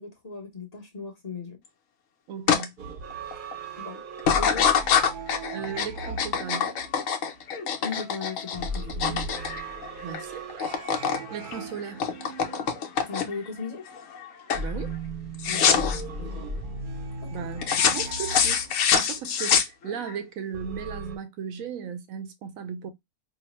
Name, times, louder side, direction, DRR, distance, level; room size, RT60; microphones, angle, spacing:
voice 1, 0.0-1.6 3.8-4.0 4.4-4.7 7.8-9.4 13.0-13.9 15.4-16.5 17.2-17.5, left 4 dB, 30° left, 0.9 m, -38 dB
voice 2, 2.3-2.7 5.5-6.7 10.0-10.5 11.3-12.1 14.6-14.9 17.3-18.6 18.9-22.9, right 7 dB, 70° right, 1.0 m, -36 dB
sound 1, 2.5-2.6 3.1-3.5 4.2-10.2 10.5-11.2 11.5-13.5 14.0-14.2 14.5-14.7 15.4-16.0 17.6-20.1, left 7 dB, 65° left, 1.0 m, -25 dB
sound 2, 2.8-7.4 8.5-13.3 14.5-19.2 20.5-21.2, right 2 dB, 90° right, 0.4 m, -37 dB
4.8 x 2.1 x 2.9 m
omnidirectional pair, 1.6 m